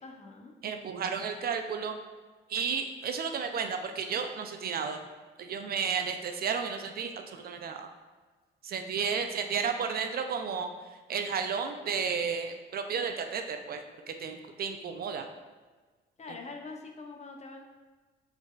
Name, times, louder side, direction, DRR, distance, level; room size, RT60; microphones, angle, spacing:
voice 1, 0.0-0.6 16.2-17.6, left 3 dB, 35° left, 2 dB, 0.6 m, -44 dB
voice 2, 0.6-2.0 2.5-5.0 5.4-7.9 8.6-10.7 11.1-15.3, right 6 dB, 50° right, 6 dB, 0.4 m, -33 dB
4.0 x 4.0 x 2.3 m, 1.4 s
cardioid pair, 90°, 20 cm